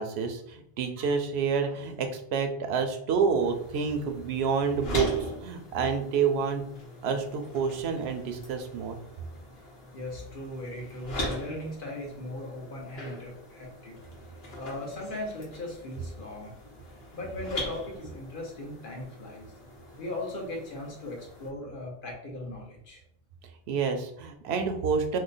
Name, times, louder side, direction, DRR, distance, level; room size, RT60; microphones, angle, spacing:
voice 1, 0.0-6.6 7.0-9.0 23.7-25.2, right 5 dB, 85° right, 6 dB, 0.8 m, -28 dB
sound 1, 3.4-21.5, left 1 dB, 75° left, 1.1 m, -41 dB
voice 2, 9.9-14.0 14.6-16.5 17.1-19.5 20.0-23.0, left 1 dB, 55° left, -1 dB, 1.0 m, -38 dB
3.0 x 2.1 x 3.9 m, 0.71 s
omnidirectional pair, 1.1 m